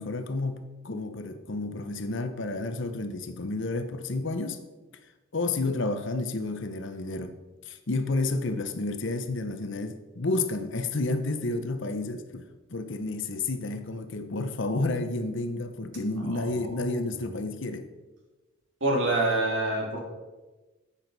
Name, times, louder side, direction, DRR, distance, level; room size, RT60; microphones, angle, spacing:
voice 1, 0.0-4.6 5.3-7.4 7.7-12.4 12.7-17.9, left 2 dB, 60° left, 9 dB, 0.8 m, -30 dB
voice 2, 16.2-17.0 18.8-20.0, right 2 dB, 65° right, -1 dB, 2.6 m, -27 dB
10.5 x 8.5 x 4.1 m, 1.2 s
head